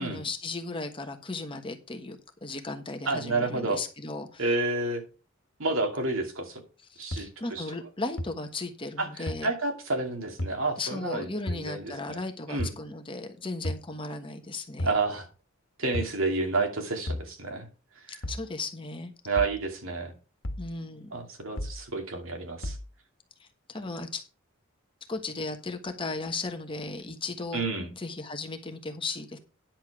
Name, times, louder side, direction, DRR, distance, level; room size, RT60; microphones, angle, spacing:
voice 1, 0.0-4.4 6.9-9.5 10.8-14.9 18.1-19.1 20.6-21.1 23.4-24.2 25.1-29.4, left 3 dB, 25° left, 6 dB, 1.2 m, -36 dB
voice 2, 3.1-3.8 4.4-5.0 5.6-6.6 7.0-7.6 9.0-12.2 12.5-12.7 14.8-15.3 15.8-17.7 19.2-20.1 21.1-22.8 27.5-27.9, right 3 dB, 75° right, 3 dB, 2.5 m, -30 dB
sound 1, 7.1-7.2 8.2-8.3 9.3-9.4 10.4-10.6 11.5-11.6 12.6-12.8 13.6-13.9 14.8-15.0 15.9-16.2 17.1-17.3 18.2-18.5 19.4-19.6 20.4-20.7 21.6-21.8 22.6-22.8, left 1 dB, 70° left, 1.6 m, -32 dB
10.5 x 7.3 x 4.8 m, 0.33 s
head